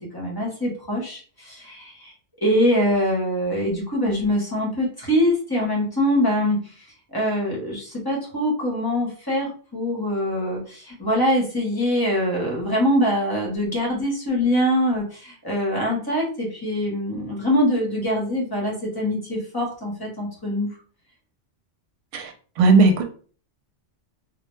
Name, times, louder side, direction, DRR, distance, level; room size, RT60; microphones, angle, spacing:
voice 1, 0.0-2.1 2.4-6.6 7.1-20.7, equal, 25° left, 0.7 m, -23 dB
voice 2, 22.6-23.0, right 3 dB, 85° right, 0.9 m, -15 dB
2.1 x 2.1 x 2.9 m
omnidirectional pair, 1.2 m